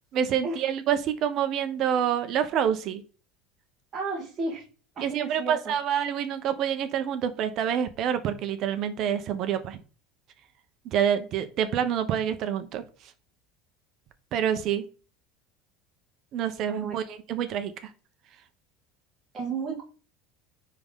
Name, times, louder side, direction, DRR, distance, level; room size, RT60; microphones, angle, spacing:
voice 1, 0.1-3.0 5.0-9.8 10.8-12.8 14.3-14.8 16.3-17.9, right 9 dB, 55° right, 10 dB, 1.0 m, -27 dB
voice 2, 3.9-4.7 4.9-5.7 16.7-17.0 19.3-19.8, right 4 dB, 35° right, -2 dB, 1.7 m, -32 dB
9.5 x 3.8 x 3.7 m, 0.36 s
supercardioid pair, 105°, 0 cm